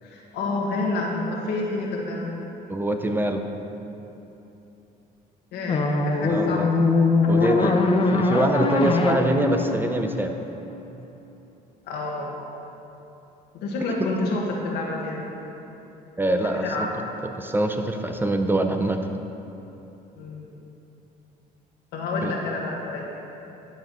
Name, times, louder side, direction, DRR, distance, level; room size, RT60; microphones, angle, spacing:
voice 1, 0.0-2.3 5.5-6.8 7.2-7.7 11.9-12.4 13.5-15.2 16.4-16.9 20.2-20.6 21.9-23.1, left 2 dB, 80° left, -2 dB, 1.7 m, -29 dB
voice 2, 2.7-3.5 6.3-6.7 7.3-7.8 8.1-10.3 14.0-14.1 16.2-16.9 17.2-19.0 22.2-22.3, right 1 dB, 10° right, 5 dB, 0.5 m, -24 dB
sound 1, 5.7-10.8, left 3 dB, 35° left, 0.7 m, -22 dB
11.5 x 5.0 x 5.5 m, 3.0 s
cardioid pair, 110°, 17 cm